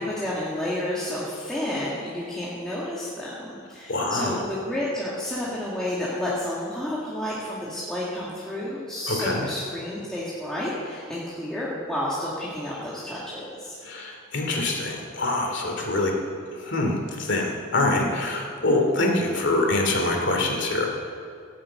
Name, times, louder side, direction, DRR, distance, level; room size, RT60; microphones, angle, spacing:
voice 1, 0.0-13.8, left 1 dB, 5° left, -8 dB, 1.9 m, -31 dB
voice 2, 3.9-4.4 9.1-9.4 13.8-16.1 16.5-20.9, left 2 dB, 55° left, 1 dB, 2.6 m, -25 dB
17.0 x 7.5 x 8.8 m, 2.3 s
head